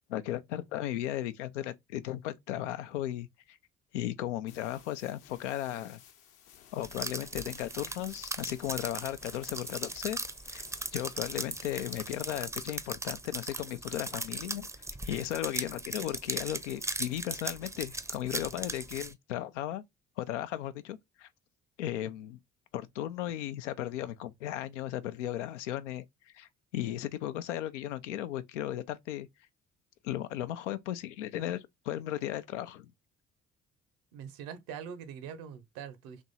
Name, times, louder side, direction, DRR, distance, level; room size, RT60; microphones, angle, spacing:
voice 1, 0.1-3.6 3.9-6.0 6.7-10.2 10.5-10.6 10.9-14.7 15.0-19.8 20.2-21.3 21.8-22.4 22.7-26.0 26.3-29.3 30.0-32.9, left 12 dB, 80° left, 0.5 m, -36 dB
sound 1, 4.5-12.5, left 9 dB, 65° left, 0.9 m, -57 dB
sound 2, 6.8-19.1, right 2 dB, 10° right, 0.6 m, -38 dB
voice 2, 34.1-36.2, right 7 dB, 70° right, 0.9 m, -43 dB
3.5 x 3.0 x 4.0 m
hypercardioid pair, 50°, 35 cm